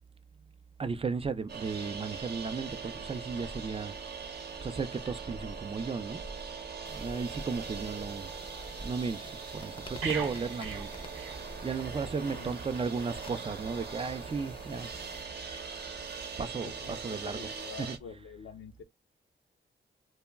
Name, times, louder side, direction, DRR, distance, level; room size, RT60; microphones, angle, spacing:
voice 1, 0.8-3.9 4.6-6.2 6.9-8.3 8.8-10.9 11.6-14.9 16.4-17.4 17.8-18.0, right 5 dB, 30° right, 0.4 m, -35 dB
sound 1, 1.5-18.0, right 5 dB, 55° right, 0.8 m, -41 dB
sound 2, 6.8-15.2, left 3 dB, 25° left, 0.5 m, -51 dB
sound 3, 10.0-11.9 12.2-12.4, right 6 dB, 90° right, 0.8 m, -39 dB
voice 2, 12.1-12.6 16.5-18.8, left 7 dB, 80° left, 0.5 m, -47 dB
2.2 x 2.0 x 3.3 m
cardioid pair, 65°, 20 cm